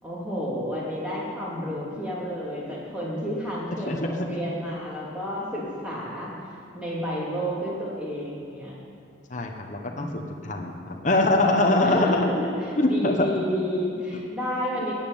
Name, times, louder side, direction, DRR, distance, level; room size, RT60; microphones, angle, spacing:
voice 1, 0.0-6.3 6.7-8.7 9.9-10.2 10.5-10.7 11.8-14.9, equal, 5° right, -7 dB, 2.9 m, -31 dB
voice 2, 9.3-12.3 12.8-13.3, left 2 dB, 40° left, 2 dB, 1.0 m, -23 dB
12.0 x 7.4 x 9.0 m, 2.4 s
head